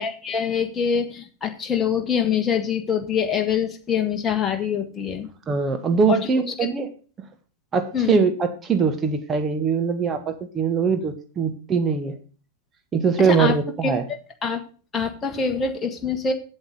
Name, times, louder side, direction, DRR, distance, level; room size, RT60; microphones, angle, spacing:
voice 1, 0.0-5.3 6.1-6.5 7.9-8.2 13.3-13.6 13.8-13.9 14.4-14.6 14.9-16.3, left 6 dB, 20° left, 3 dB, 1.5 m, -24 dB
voice 2, 5.5-6.9 7.7-12.2 12.9-14.0, right 5 dB, 20° right, 7 dB, 1.6 m, -22 dB
8.0 x 7.9 x 6.5 m, 0.38 s
figure-of-eight pair, 90°, 0 cm